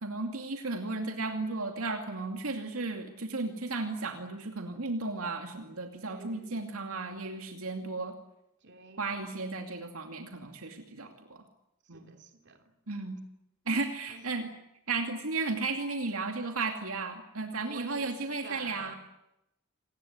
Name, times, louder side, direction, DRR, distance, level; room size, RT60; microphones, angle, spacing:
voice 1, 0.0-8.1 9.0-11.4 11.9-12.1 12.9-13.2 13.7-14.5 14.9-19.0, right 3 dB, 75° right, 5 dB, 2.5 m, -34 dB
voice 2, 6.1-6.7 7.7-7.9 8.6-9.3 11.9-12.6 14.1-14.2 17.5-19.0, right 3 dB, 55° right, 6 dB, 3.2 m, -49 dB
27.5 x 19.0 x 9.5 m, 0.84 s
head